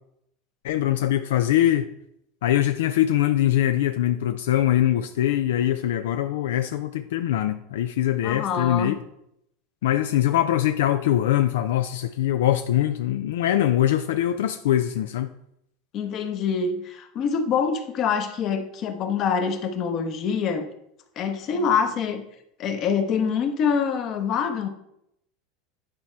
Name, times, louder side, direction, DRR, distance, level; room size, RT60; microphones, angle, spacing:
voice 1, 0.6-1.9 2.4-9.0 9.8-15.3, left 12 dB, 85° left, 0.4 m, -22 dB
voice 2, 8.2-9.0 15.9-20.7 21.2-22.2 22.6-24.7, left 6 dB, 45° left, 1.0 m, -25 dB
9.7 x 4.3 x 4.5 m
supercardioid pair, 120°, 0 cm